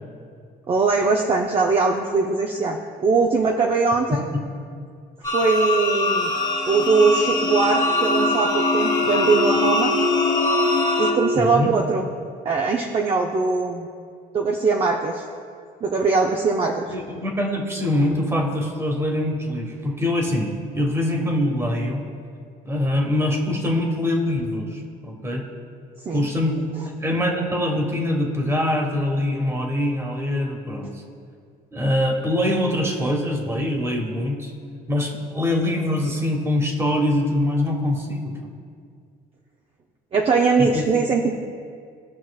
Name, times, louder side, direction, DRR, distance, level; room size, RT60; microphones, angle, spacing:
voice 1, 0.7-4.2 5.3-6.3 6.7-9.9 11.0-12.0 12.4-13.9 14.3-15.2 15.8-16.8 26.1-26.3 40.1-41.3, right 4 dB, 35° right, 0 dB, 0.6 m, -21 dB
sound 1, 5.2-11.1, left 2 dB, 20° left, 1.2 m, -22 dB
voice 2, 11.4-11.7 16.9-22.1 22.6-25.5 26.1-26.7 27.0-30.9 31.7-34.5 34.9-38.5 40.6-40.8, left 1 dB, 15° right, 1 dB, 1.4 m, -23 dB
17.0 x 5.8 x 2.4 m, 2.2 s
cardioid pair, 110°, 17 cm